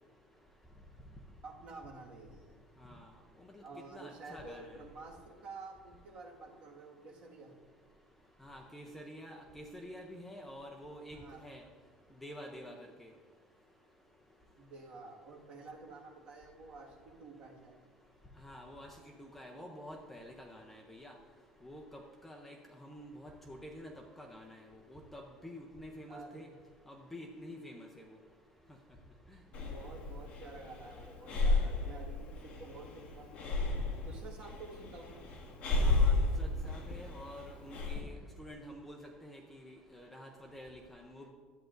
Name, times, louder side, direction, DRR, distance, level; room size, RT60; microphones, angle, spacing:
voice 1, 1.4-2.6 3.6-7.6 11.1-11.4 14.6-17.8 26.1-26.5 29.4-33.3 33.6-33.7 34.0-35.2, right 3 dB, 35° right, -2 dB, 1.8 m, -50 dB
voice 2, 3.9-4.7 8.4-11.6 12.2-12.7 13.0-13.1 18.4-21.1 21.6-23.9 24.2-24.6 24.9-26.5 26.9-28.0 35.8-41.3, equal, 5° left, 1 dB, 0.6 m, -49 dB
Breathing, 29.5-38.0, left 3 dB, 40° left, 1.7 m, -33 dB
13.0 x 9.0 x 2.6 m, 1.5 s
cardioid pair, 160°, 3 cm